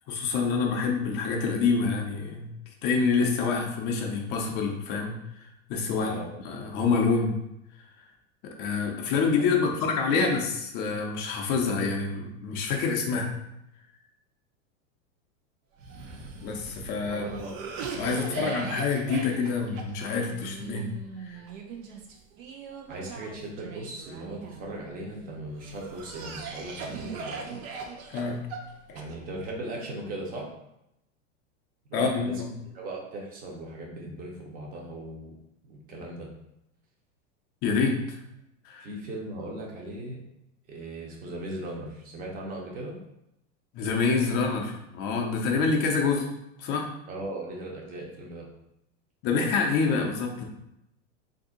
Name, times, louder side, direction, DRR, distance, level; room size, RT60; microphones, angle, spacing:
voice 1, 0.1-2.5 2.8-5.4 5.7-6.2 6.4-7.4 8.6-10.4 10.7-13.3 16.4-17.2 18.0-20.9 21.2-21.4 28.1-28.4 28.9-29.0 31.9-32.5 37.6-38.2 38.6-38.9 43.7-46.3 46.6-46.9 49.2-50.4, left 4 dB, 25° left, 1 dB, 0.4 m, -27 dB
voice 2, 5.9-6.3 9.4-9.8 10.1-10.3 17.1-17.7 18.1-18.5 22.9-27.6 28.9-30.5 31.9-32.3 32.7-35.3 35.6-36.3 38.8-40.2 40.7-43.0 47.1-48.5, right 1 dB, 20° right, -1 dB, 0.6 m, -38 dB
Cough, 15.8-25.0 25.6-29.5, right 5 dB, 70° right, 0.7 m, -40 dB
2.6 x 2.6 x 3.7 m, 0.83 s
supercardioid pair, 150°, 41 cm